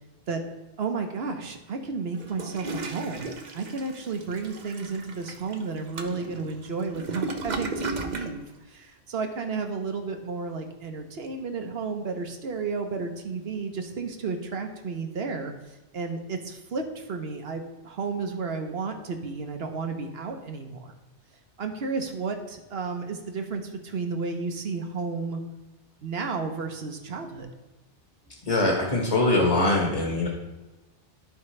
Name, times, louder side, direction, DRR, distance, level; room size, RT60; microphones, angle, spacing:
voice 1, 0.8-20.9 21.6-25.4 26.0-27.5, right 4 dB, 60° right, 5 dB, 1.2 m, -32 dB
Toilet flush, 2.2-8.3, right 3 dB, 45° right, 0.8 m, -35 dB
voice 2, 28.4-30.3, left 2 dB, 35° left, -1 dB, 1.4 m, -22 dB
13.5 x 4.7 x 3.3 m, 1.1 s
omnidirectional pair, 1.2 m